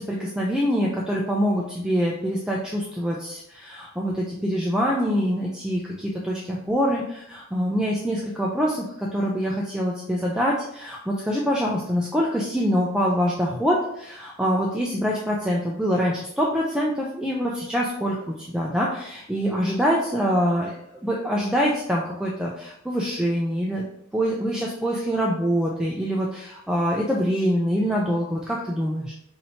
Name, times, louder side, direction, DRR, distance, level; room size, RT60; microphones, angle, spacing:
voice 1, 0.1-20.8 21.0-23.9 24.1-29.1, equal, 5° right, -3 dB, 0.3 m, -25 dB
2.7 x 2.7 x 4.3 m, 0.75 s
head